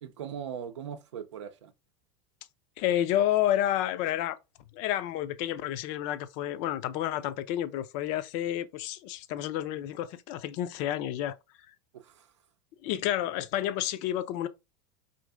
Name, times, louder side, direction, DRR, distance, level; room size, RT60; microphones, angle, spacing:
voice 1, 0.0-1.7 11.9-12.3, right 8 dB, 85° right, 0.5 m, -40 dB
voice 2, 2.8-4.4 4.7-11.4 12.8-14.5, left 12 dB, 55° left, 0.4 m, -30 dB
2.7 x 2.5 x 3.4 m
hypercardioid pair, 95°, 15 cm